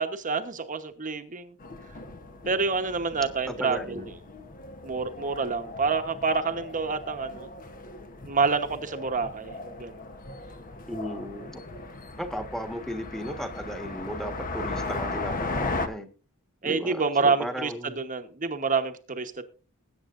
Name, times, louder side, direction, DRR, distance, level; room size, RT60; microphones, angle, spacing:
voice 1, 0.0-1.6 2.4-4.1 4.8-7.5 8.3-10.1 16.6-19.4, right 4 dB, 35° right, 1.1 m, -28 dB
sound 1, 1.6-15.9, left 2 dB, 40° left, 1.0 m, -37 dB
voice 2, 3.5-4.1 10.9-11.6 12.2-16.1 16.6-18.0, equal, ahead, 1.4 m, -35 dB
20.5 x 9.1 x 2.5 m
head